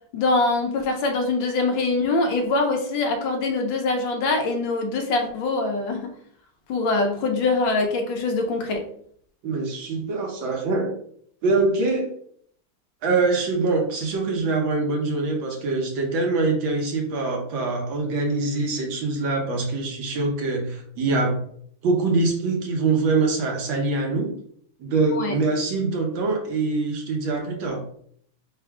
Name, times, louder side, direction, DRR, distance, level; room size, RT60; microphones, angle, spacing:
voice 1, 0.1-6.1 6.7-8.8 25.1-25.4, left 3 dB, 75° left, 4 dB, 1.5 m, -23 dB
voice 2, 9.4-10.9 11.4-12.1 13.0-21.4 21.8-24.3 24.8-27.8, right 3 dB, 75° right, 1 dB, 1.8 m, -24 dB
4.2 x 2.3 x 4.6 m, 0.63 s
omnidirectional pair, 2.2 m